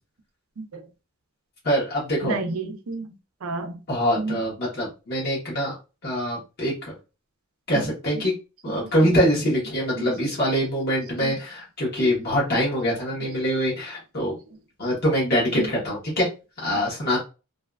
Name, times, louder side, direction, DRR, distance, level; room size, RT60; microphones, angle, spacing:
voice 1, 1.6-2.4 3.9-5.8 6.0-6.9 7.7-8.3 8.6-14.3 14.8-16.3 16.6-17.2, equal, 45° left, 1.0 m, -24 dB
voice 2, 2.2-3.1 3.4-3.8 4.2-4.4 7.7-7.8 8.8-9.1 10.0-10.1 11.2-11.3 13.2-13.3 15.5-15.7 16.7-16.8, right 3 dB, 75° right, 0.5 m, -31 dB
2.6 x 2.4 x 2.2 m
head